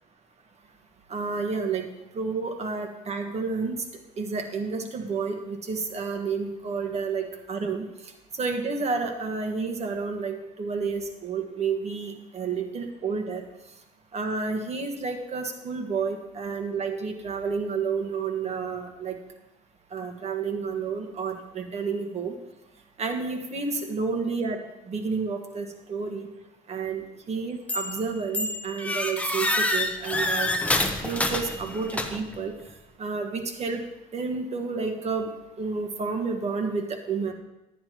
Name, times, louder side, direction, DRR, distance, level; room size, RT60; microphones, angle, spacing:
voice 1, 1.1-1.8 2.1-3.7 4.2-7.8 8.4-13.4 14.1-19.2 19.9-22.3 23.0-24.6 24.9-26.3 26.7-30.5 31.0-32.5 33.0-33.8 34.1-35.3 35.6-37.3, right 4 dB, 40° right, 4 dB, 1.5 m, -30 dB
sound 1, 27.7-28.0 28.3-32.4, left 1 dB, 10° left, 0.8 m, -27 dB
10.5 x 10.0 x 3.0 m, 0.92 s
cardioid pair, 110°, 17 cm